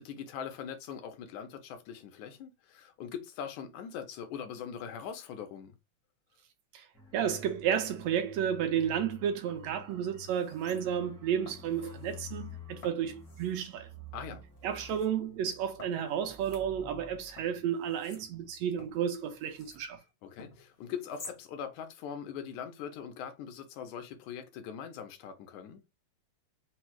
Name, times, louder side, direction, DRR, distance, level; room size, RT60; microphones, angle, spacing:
voice 1, 0.0-5.8 14.1-14.4 20.2-25.8, left 8 dB, 90° left, 2.3 m, -41 dB
sound 1, 6.9-19.3 19.6-19.8, left 2 dB, 5° left, 0.4 m, -50 dB
voice 2, 7.1-13.9 14.6-20.0, right 9 dB, 75° right, 1.7 m, -32 dB
sound 2, 9.4-9.5 9.9-11.1 11.5-12.2 12.8-13.7 14.3-15.1 15.8-17.1 17.4-19.9 20.4-21.4 21.8-21.9, left 3 dB, 65° left, 0.6 m, -52 dB
5.4 x 2.0 x 4.5 m
omnidirectional pair, 3.3 m